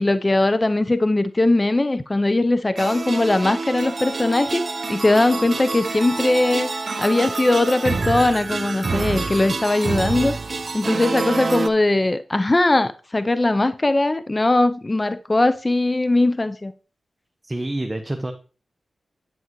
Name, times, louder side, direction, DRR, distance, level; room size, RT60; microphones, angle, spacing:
voice 1, 0.0-4.6 4.9-6.7 7.0-10.4 10.7-16.7, left 2 dB, 30° left, 0.5 m, -20 dB
sound 1, 2.8-11.7, right 4 dB, 55° right, 0.7 m, -27 dB
voice 2, 17.4-18.3, right 1 dB, 25° right, 1.0 m, -27 dB
9.4 x 7.3 x 3.0 m
cardioid pair, 40°, 0 cm